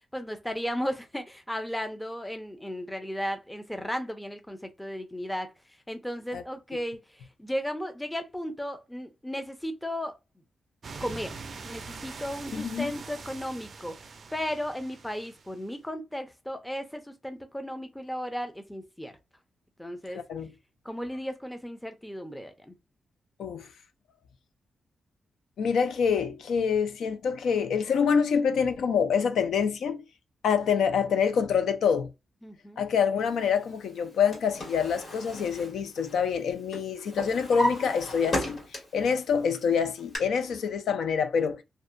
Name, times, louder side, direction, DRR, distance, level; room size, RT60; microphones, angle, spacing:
voice 1, 0.1-5.5 5.9-10.2 11.0-19.1 19.8-20.2 20.8-22.8 32.4-32.8, equal, 5° left, 0.5 m, -35 dB
sound 1, 10.8-15.6, right 4 dB, 50° right, 0.4 m, -43 dB
voice 2, 12.5-12.9 20.1-20.5 23.4-23.7 25.6-30.0 30.4-32.1 32.8-38.6 38.9-41.6, left 6 dB, 85° left, 0.4 m, -26 dB
Drawer open or close, 34.0-36.4 36.7-39.1 39.5-40.2, left 1 dB, 45° left, 1.5 m, -34 dB
2.6 x 2.2 x 2.4 m
cardioid pair, 105°, 0 cm